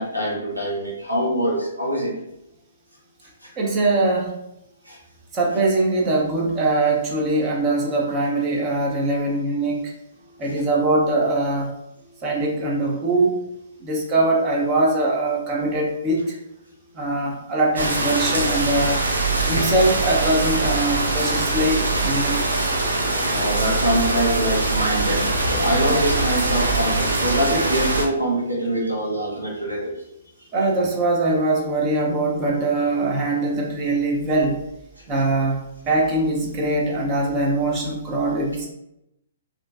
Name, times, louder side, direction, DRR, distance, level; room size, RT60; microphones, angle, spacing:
voice 1, 0.0-2.1 4.9-5.0 23.3-30.0, equal, 90° right, -3 dB, 0.9 m, -24 dB
voice 2, 3.6-4.3 5.3-9.9 10.4-11.7 12.2-13.4 13.8-16.3 16.9-19.0 19.5-22.7 30.5-34.6 35.1-38.7, right 2 dB, 25° right, -2 dB, 0.6 m, -22 dB
sound 1, 17.8-28.0, right 2 dB, 70° right, 0.5 m, -22 dB
2.9 x 2.5 x 2.3 m, 0.85 s
figure-of-eight pair, 120°, 0 cm